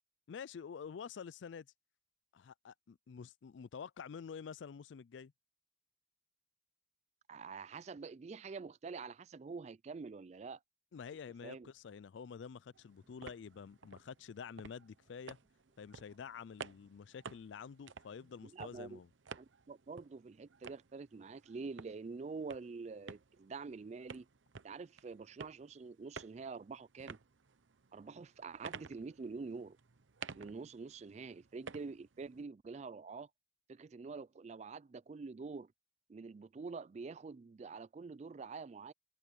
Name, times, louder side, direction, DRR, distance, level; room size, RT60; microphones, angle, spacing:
voice 1, 0.3-1.7 2.3-5.3 10.9-15.4 15.8-19.1, left 6 dB, 75° left, 0.4 m, -48 dB
voice 2, 7.3-10.6 11.4-11.7 18.4-19.0 19.4-24.3 24.6-27.2 27.9-29.8 30.4-33.3 33.7-35.7 36.1-38.9, right 4 dB, 35° right, 0.3 m, -46 dB
sound 1, 11.3-17.5, equal, 10° right, 2.5 m, -81 dB
sound 2, 12.7-32.4, right 5 dB, 90° right, 0.8 m, -54 dB
head